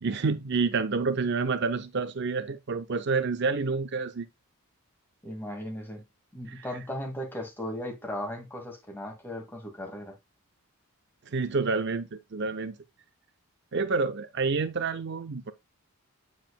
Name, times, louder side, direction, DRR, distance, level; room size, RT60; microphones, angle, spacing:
voice 1, 0.0-4.3 11.3-12.8 13.7-15.5, right 4 dB, 50° right, 0.5 m, -28 dB
voice 2, 5.2-6.0 6.3-10.2, left 1 dB, 10° left, 2.0 m, -37 dB
7.6 x 7.1 x 2.2 m
head